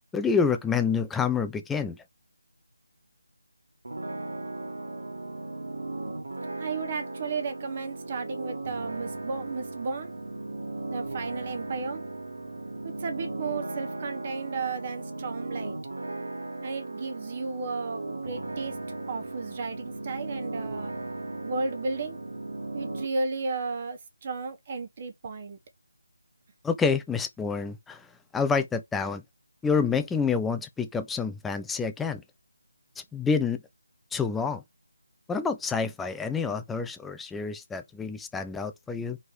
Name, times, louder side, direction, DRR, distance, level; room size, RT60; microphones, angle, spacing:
voice 1, 0.1-2.0 26.6-28.1 28.3-29.2 29.6-32.2 33.1-33.6 34.1-34.6 35.3-39.2, left 5 dB, 5° left, 0.5 m, -28 dB
sound 1, 3.8-23.1, right 2 dB, 70° right, 1.7 m, -37 dB
voice 2, 6.6-10.1 10.9-12.0 12.8-15.8 16.6-18.8 19.1-20.9 21.4-22.2 22.7-25.6, right 4 dB, 35° right, 1.1 m, -34 dB
4.7 x 4.6 x 4.9 m
figure-of-eight pair, 155°, 0 cm